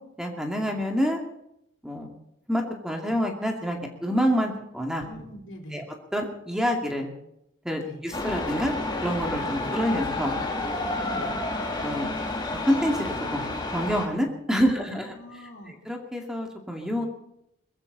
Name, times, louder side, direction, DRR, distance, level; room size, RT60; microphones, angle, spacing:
voice 1, 0.2-1.2 1.8-2.1 2.5-5.1 5.7-5.8 6.1-7.1 7.6-8.7 9.0-10.3 11.1-11.3 11.8-12.1 12.7-13.4 13.7-15.1 15.9-17.1, equal, 5° right, 2 dB, 2.6 m, -27 dB
voice 2, 5.0-5.8 7.8-8.0 11.1-11.3 14.6-15.8, equal, 80° left, 1 dB, 4.4 m, -44 dB
sound 1, 8.1-14.1, left 2 dB, 25° left, 3.5 m, -30 dB
22.0 x 15.0 x 4.2 m, 0.79 s
head